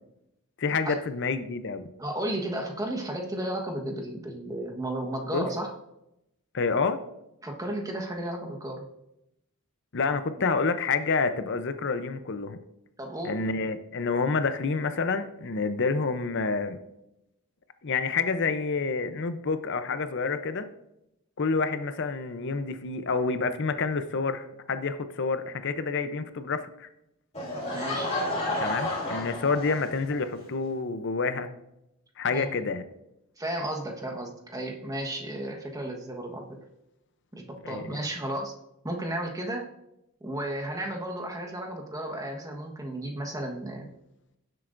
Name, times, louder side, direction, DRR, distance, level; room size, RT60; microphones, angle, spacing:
voice 1, 0.6-1.9 5.3-5.5 6.5-7.0 9.9-12.6 13.2-16.8 17.8-20.7 21.4-26.9 28.6-31.5 32.2-32.8 37.6-38.0, left 4 dB, 55° left, 10 dB, 0.6 m, -28 dB
voice 2, 2.0-5.7 7.4-8.8 13.0-13.4 27.7-28.1 32.3-32.5 33.4-36.6 37.3-38.5 38.8-39.7 40.2-43.9, right 1 dB, 15° right, 2 dB, 1.2 m, -33 dB
Laughter / Crowd, 27.3-30.2, left 1 dB, 30° left, 2.9 m, -31 dB
16.5 x 7.8 x 2.6 m, 0.85 s
head